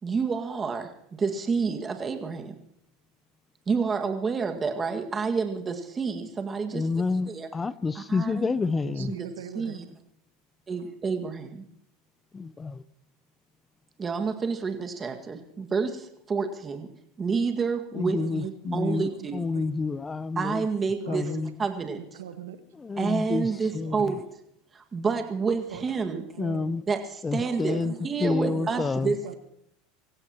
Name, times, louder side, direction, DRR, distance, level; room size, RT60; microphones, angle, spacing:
voice 1, 0.0-2.6 3.7-6.8 7.3-7.5 8.1-8.5 9.2-9.3 9.6-9.8 10.7-11.6 14.0-16.9 17.2-19.4 20.4-21.3 21.6-22.0 23.0-24.2 24.7-26.3 26.9-27.0 27.3-27.8 28.0-29.3, right 5 dB, 25° right, 1.9 m, -29 dB
voice 2, 6.7-9.1 12.3-12.8 17.9-20.7 21.1-21.7 22.7-24.2 26.4-26.8 27.2-29.1, left 4 dB, 20° left, 0.5 m, -29 dB
voice 3, 8.8-9.8 17.9-19.7 21.0-21.4 22.0-22.6 23.5-24.1 25.7-25.8 26.1-26.8 27.4-28.1 28.5-28.8 29.1-29.3, right 10 dB, 85° right, 1.3 m, -41 dB
25.0 x 15.5 x 3.0 m
hypercardioid pair, 105°, 0 cm